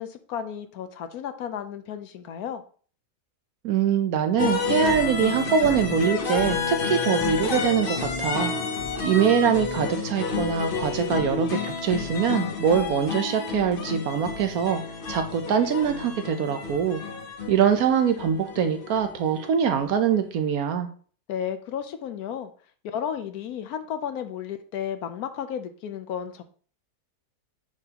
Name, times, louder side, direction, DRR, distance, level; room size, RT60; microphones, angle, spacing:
voice 1, 0.0-2.6 21.3-22.5 22.8-26.4, left 8 dB, 70° left, 9 dB, 1.0 m, -33 dB
voice 2, 3.6-8.5 9.0-14.8 15.1-17.0 17.5-20.9, right 7 dB, 65° right, 7 dB, 1.1 m, -23 dB
sound 1, 4.4-20.2, left 4 dB, 45° left, 0.7 m, -30 dB
9.1 x 3.9 x 2.9 m, 0.44 s
omnidirectional pair, 1.8 m